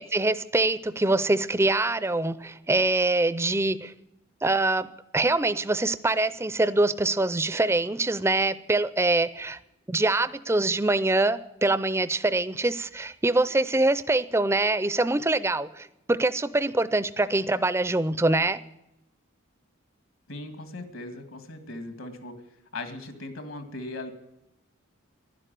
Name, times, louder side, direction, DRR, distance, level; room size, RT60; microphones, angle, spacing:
voice 1, 0.1-3.9 4.4-4.9 5.1-9.6 9.9-18.6, right 2 dB, 10° right, 15 dB, 0.4 m, -24 dB
voice 2, 20.3-22.3 22.7-24.1, left 2 dB, 70° left, 7 dB, 2.1 m, -38 dB
11.5 x 11.0 x 9.0 m, 0.87 s
head